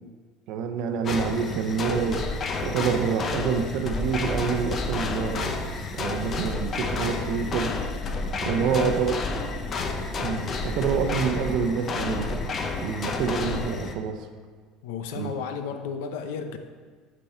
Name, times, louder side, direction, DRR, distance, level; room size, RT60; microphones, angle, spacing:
voice 1, 0.5-2.2 2.6-5.5 5.9-7.7 8.4-9.2 10.2-12.5 12.8-14.3 15.1-15.3, right 6 dB, 65° right, 6 dB, 0.8 m, -27 dB
sound 1, 1.1-14.0, left 4 dB, 40° left, 0.8 m, -30 dB
sound 2, 3.9-11.7, right 2 dB, ahead, 0.4 m, -38 dB
voice 2, 8.5-9.0 13.2-13.4 14.8-16.6, left 6 dB, 80° left, 8 dB, 0.7 m, -34 dB
8.5 x 5.4 x 4.4 m, 1.5 s
supercardioid pair, 110°, 0 cm